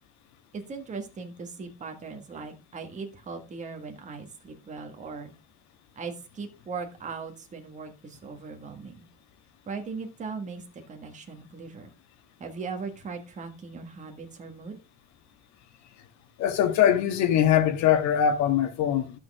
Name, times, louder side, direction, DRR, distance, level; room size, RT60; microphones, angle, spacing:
voice 1, 0.5-5.3 5.9-9.0 9.7-11.9 12.4-14.8, right 4 dB, 25° right, 1.6 m, -39 dB
voice 2, 16.4-19.2, left 9 dB, 65° left, 1.6 m, -22 dB
11.5 x 6.3 x 3.6 m
cardioid pair, 170°, 30 cm